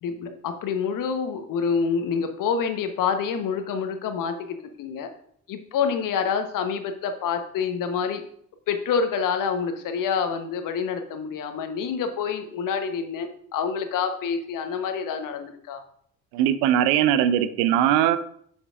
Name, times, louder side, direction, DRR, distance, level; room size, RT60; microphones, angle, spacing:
voice 1, 0.0-5.1 5.5-8.2 8.7-15.8, left 6 dB, 50° left, 7 dB, 1.1 m, -27 dB
voice 2, 16.3-18.2, right 11 dB, 60° right, 13 dB, 0.6 m, -20 dB
7.9 x 7.2 x 2.5 m, 0.63 s
figure-of-eight pair, 50°, 42 cm